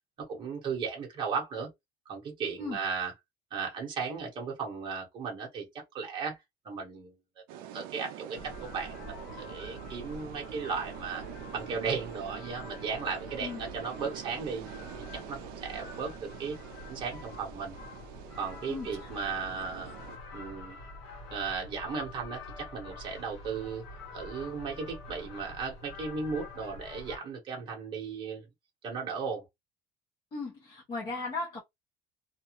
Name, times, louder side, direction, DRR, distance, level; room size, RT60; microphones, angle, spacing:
voice 1, 0.3-1.7 2.1-3.1 3.5-6.4 6.6-7.2 7.7-11.2 11.5-14.6 15.1-16.1 16.4-16.6 16.9-17.8 18.4-20.0 20.3-20.8 21.3-23.8 24.1-28.5 28.8-29.4, right 5 dB, 25° right, 1.0 m, -36 dB
sound 1, 7.5-20.2, right 10 dB, 55° right, 0.4 m, -46 dB
sound 2, 8.4-27.2, left 2 dB, 70° left, 1.3 m, -46 dB
voice 2, 18.7-19.1 30.3-31.6, left 3 dB, 25° left, 0.6 m, -37 dB
2.5 x 2.2 x 2.9 m
cardioid pair, 180°, 18 cm